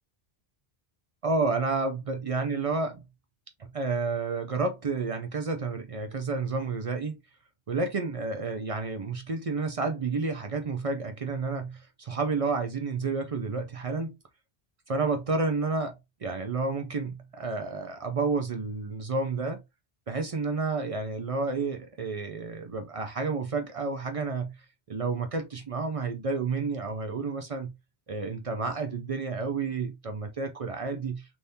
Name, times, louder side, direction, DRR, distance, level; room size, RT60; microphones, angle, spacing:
voice 1, 1.2-3.0 3.6-7.2 7.7-14.2 14.9-15.9 16.2-19.6 20.1-24.5 24.9-27.7 28.1-31.4, right 4 dB, 50° right, 0.4 m, -30 dB
3.5 x 2.6 x 2.6 m
omnidirectional pair, 1.1 m